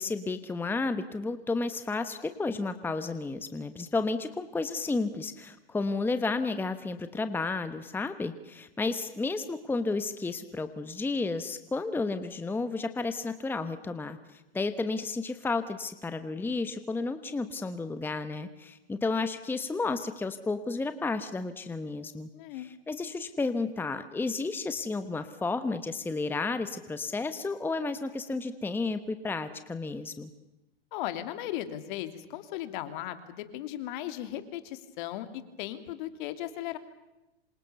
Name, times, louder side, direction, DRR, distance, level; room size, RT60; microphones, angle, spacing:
voice 1, 0.0-30.3, left 3 dB, 5° left, 11 dB, 1.1 m, -32 dB
voice 2, 22.3-22.7 30.9-36.8, left 13 dB, 50° left, 10 dB, 2.9 m, -37 dB
27.0 x 27.0 x 6.9 m, 1.0 s
hypercardioid pair, 130°, 31 cm